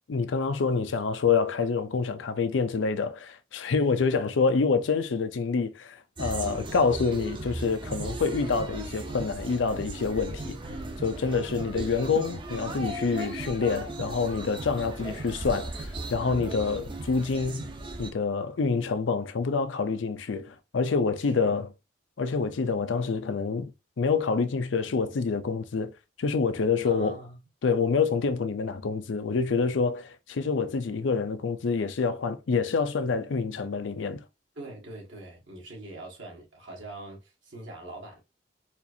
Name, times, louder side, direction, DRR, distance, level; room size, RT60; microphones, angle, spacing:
voice 1, 0.1-10.6 11.0-17.7 18.0-21.7 22.2-23.7 24.0-25.9 26.2-27.2 27.6-34.2, left 4 dB, 75° left, 0.5 m, -27 dB
sound 1, 6.2-18.1, right 2 dB, 25° right, 0.5 m, -37 dB
voice 2, 10.6-11.9 15.0-15.3 16.4-16.8 21.2-21.6 26.8-27.4 34.5-38.2, right 2 dB, 75° right, 1.5 m, -43 dB
4.3 x 2.4 x 2.6 m
head